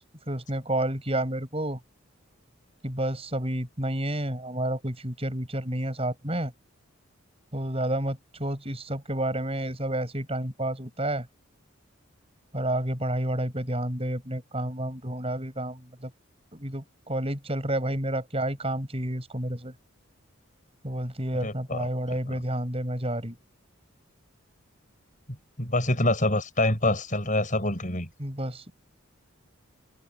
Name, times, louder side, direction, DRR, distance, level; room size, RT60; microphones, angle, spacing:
voice 1, 0.3-1.8 2.8-6.5 7.5-11.3 12.5-16.1 16.5-19.7 20.8-23.4 28.2-28.7, right 1 dB, 30° right, 7.4 m, -30 dB
voice 2, 21.4-21.9 25.6-28.1, left 1 dB, 40° left, 8.0 m, -25 dB
head